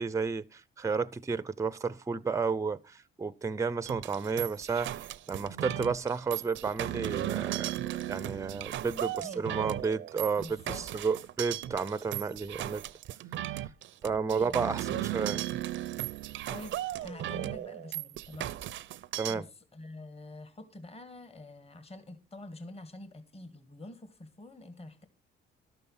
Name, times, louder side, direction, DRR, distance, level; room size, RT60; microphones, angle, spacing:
voice 1, 0.0-10.6 10.9-12.8 13.5-13.7 14.0-15.4 19.2-19.4, right 5 dB, 15° right, 0.5 m, -32 dB
sound 1, 3.9-19.3, right 14 dB, 75° right, 0.5 m, -36 dB
voice 2, 9.2-9.7 10.4-10.9 14.3-15.6 16.5-18.6 19.3-25.1, left 2 dB, 30° left, 1.5 m, -47 dB
12.0 x 6.8 x 5.5 m
cardioid pair, 90°, 20 cm